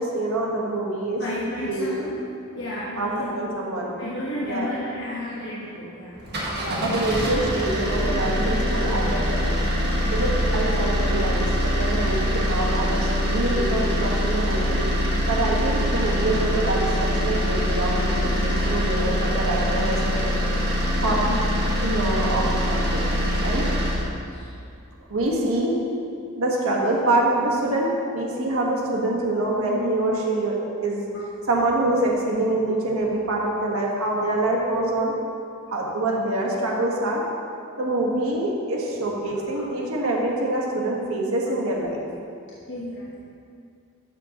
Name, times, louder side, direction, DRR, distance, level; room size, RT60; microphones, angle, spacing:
voice 1, 0.0-1.2 1.6-1.9 3.0-3.9 4.4-4.7 6.6-9.5 10.1-14.8 15.3-20.3 21.0-21.2 21.8-23.0 23.4-23.7 25.1-25.8 26.4-31.0 31.5-35.1 35.7-37.2 37.8-42.0, right 2 dB, 65° right, -2 dB, 1.6 m, -25 dB
voice 2, 1.2-2.1 2.5-3.4 4.0-6.2 18.2-18.8 20.9-21.4 24.2-24.5 31.1-31.3 39.3-39.7 42.7-43.2, left 1 dB, 55° left, -7 dB, 1.2 m, -33 dB
sound 1, 6.2-24.1, equal, 50° right, 1.7 m, -24 dB
12.5 x 6.9 x 3.0 m, 2.5 s
head